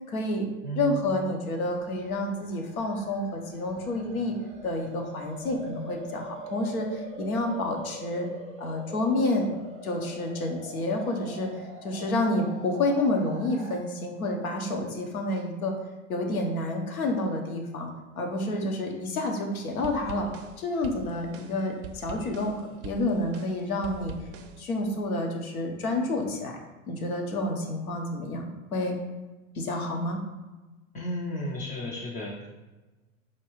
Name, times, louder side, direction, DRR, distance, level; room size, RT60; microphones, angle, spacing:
voice 1, 0.1-0.4 0.8-4.3 4.6-8.3 8.6-9.5 9.8-15.7 16.1-17.9 18.2-20.3 20.6-24.1 24.6-26.6 26.9-29.0 29.5-30.2, left 2 dB, 90° left, 2 dB, 0.8 m, -29 dB
voice 2, 0.6-1.0 30.9-32.5, equal, 20° left, -4 dB, 0.4 m, -33 dB
sound 1, 1.6-13.8, right 2 dB, 15° right, 0.7 m, -44 dB
sound 2, 19.5-24.6, right 5 dB, 50° right, 0.4 m, -44 dB
4.4 x 2.3 x 3.0 m, 1.2 s
hypercardioid pair, 95°, 42 cm